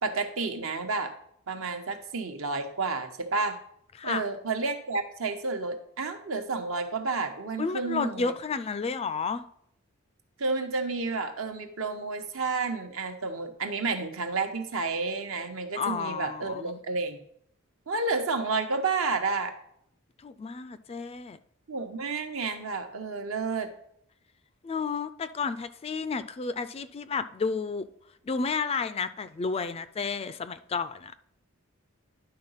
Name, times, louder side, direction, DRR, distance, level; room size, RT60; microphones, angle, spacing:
voice 1, 0.0-1.1 1.5-3.6 4.0-8.3 10.4-17.2 17.9-19.5 21.7-23.7, right 4 dB, 70° right, 1.0 m, -30 dB
voice 2, 7.6-9.4 15.8-16.8 20.2-21.4 24.6-27.9 28.2-31.1, left 5 dB, 30° left, 0.3 m, -31 dB
10.5 x 3.9 x 5.6 m
head